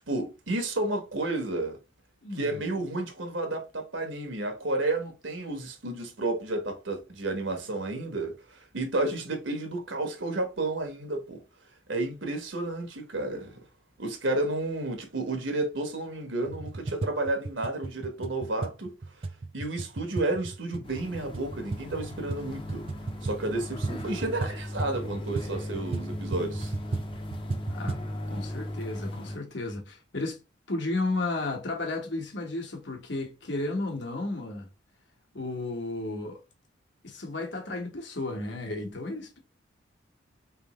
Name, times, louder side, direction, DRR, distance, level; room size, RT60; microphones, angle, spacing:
voice 1, 0.1-1.8 2.3-11.4 11.9-13.6 14.0-18.9 19.5-22.9 23.2-26.7, right 2 dB, 75° right, 1.1 m, -31 dB
voice 2, 2.2-2.6 27.7-28.0 28.2-30.4 30.7-34.7 35.3-36.4 37.0-39.4, left 2 dB, 65° left, 1.3 m, -33 dB
sound 1, 16.4-28.1, right 3 dB, 30° right, 0.3 m, -36 dB
sound 2, 20.8-29.4, left 1 dB, 25° left, 0.6 m, -37 dB
3.9 x 3.4 x 3.0 m
head